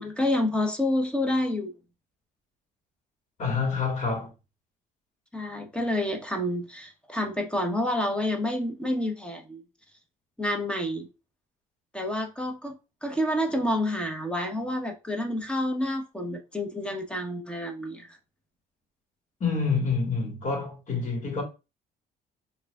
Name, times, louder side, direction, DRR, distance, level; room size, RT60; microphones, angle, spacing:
voice 1, 0.0-1.7 5.3-9.6 10.4-11.1 11.9-12.8 13.0-18.1, left 1 dB, 5° left, 0.9 m, -28 dB
voice 2, 3.4-4.3 19.4-21.4, left 4 dB, 45° left, 1.7 m, -27 dB
4.6 x 2.7 x 2.3 m
cardioid pair, 110°, 17 cm